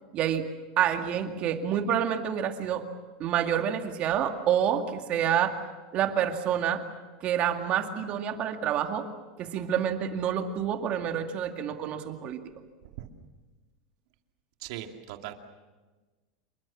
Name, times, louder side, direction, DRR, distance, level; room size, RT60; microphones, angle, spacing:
voice 1, 0.1-0.4 0.8-2.8 3.2-5.6 5.9-6.8 7.2-9.1 9.4-12.4, right 9 dB, 35° right, 5 dB, 2.2 m, -28 dB
voice 2, 14.6-15.3, right 12 dB, 65° right, 5 dB, 2.6 m, -39 dB
27.5 x 23.5 x 7.3 m, 1.3 s
supercardioid pair, 150°, 3 cm